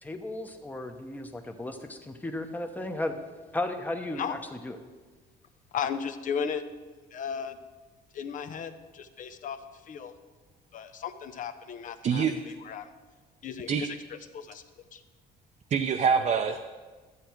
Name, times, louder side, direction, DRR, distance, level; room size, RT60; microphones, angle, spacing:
voice 1, 0.0-3.1 3.5-4.4 4.6-4.8, left 2 dB, 10° left, 5 dB, 1.0 m, -34 dB
voice 2, 5.7-6.6 7.1-7.6 8.1-9.6 9.9-10.1 10.7-12.9 13.4-14.6 14.9-15.0, left 7 dB, 50° left, 10 dB, 0.8 m, -35 dB
voice 3, 12.0-12.3 13.7-13.9 15.7-16.6, right 6 dB, 45° right, 4 dB, 0.6 m, -25 dB
12.5 x 8.2 x 4.5 m, 1.3 s
cardioid pair, 110°, 17 cm